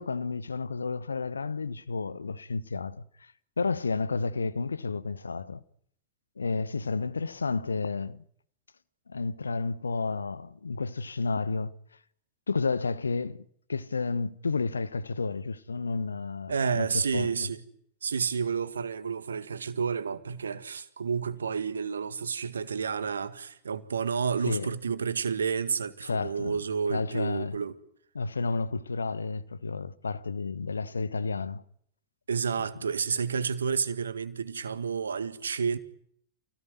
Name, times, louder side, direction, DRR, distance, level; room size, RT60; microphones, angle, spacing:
voice 1, 0.0-3.3 3.6-5.6 6.4-8.2 9.1-11.7 12.5-13.4 13.7-17.3 24.5-24.7 26.0-26.6 26.9-27.6 28.1-31.6 32.6-32.7, left 4 dB, 75° left, 1.2 m, -31 dB
voice 2, 16.5-17.6 18.0-27.8 32.3-35.8, right 6 dB, 70° right, 1.9 m, -30 dB
28.5 x 18.0 x 9.5 m
figure-of-eight pair, 90°, 0 cm